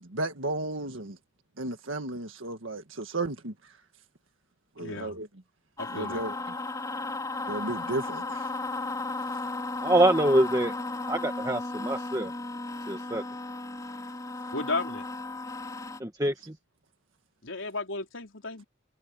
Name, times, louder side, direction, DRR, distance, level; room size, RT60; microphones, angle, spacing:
voice 1, 0.1-1.2 1.6-3.5 4.8-5.3 5.9-6.3 7.5-8.5, right 2 dB, 85° right, 1.7 m, -33 dB
voice 2, 4.8-5.2 5.8-6.2 14.5-15.1 17.4-18.6, left 3 dB, 80° left, 4.2 m, -34 dB
sound 1, 5.8-16.0, left 2 dB, 20° left, 4.7 m, -35 dB
voice 3, 9.8-10.8 11.1-12.3 12.9-13.2 16.0-16.6, right 1 dB, 20° right, 1.9 m, -25 dB
head